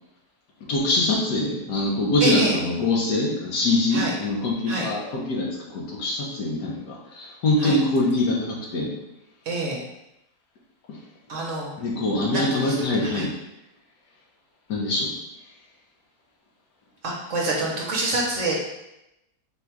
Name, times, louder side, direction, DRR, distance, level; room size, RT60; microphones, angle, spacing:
voice 1, 0.7-8.9 10.9-11.0 11.8-13.3 14.7-15.1, left 2 dB, 80° left, -3 dB, 1.5 m, -24 dB
voice 2, 2.2-2.5 3.9-4.1 4.7-4.9 7.6-7.8 9.5-9.8 11.3-11.7 12.3-12.7 13.0-13.2 17.0-18.6, right 2 dB, 55° right, -2 dB, 1.1 m, -26 dB
4.1 x 2.4 x 4.5 m, 0.89 s
omnidirectional pair, 1.8 m